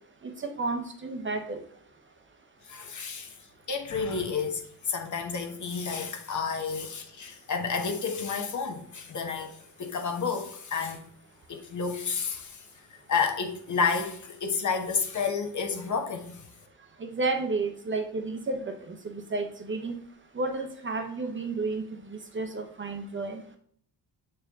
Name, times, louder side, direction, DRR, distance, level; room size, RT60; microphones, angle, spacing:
voice 1, 0.2-1.6 17.0-20.0 20.3-23.4, right 3 dB, 30° right, 0.7 m, -32 dB
voice 2, 2.6-3.4 3.7-11.0 11.5-16.5, left 5 dB, 45° left, 1.0 m, -31 dB
7.4 x 4.6 x 3.5 m
wide cardioid pair, 160°, 41 cm